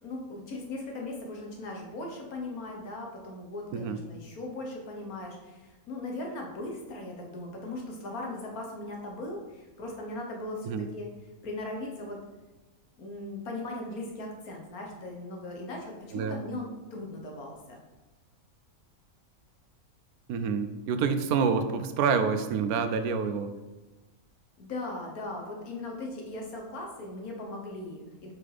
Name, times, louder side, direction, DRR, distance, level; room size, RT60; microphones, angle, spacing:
voice 1, 0.0-11.1 11.4-12.2 13.0-17.8 24.6-28.3, left 2 dB, 85° left, 1 dB, 1.7 m, -38 dB
voice 2, 20.3-23.5, right 6 dB, 85° right, 9 dB, 1.1 m, -27 dB
5.2 x 4.6 x 5.0 m, 1.1 s
omnidirectional pair, 1.5 m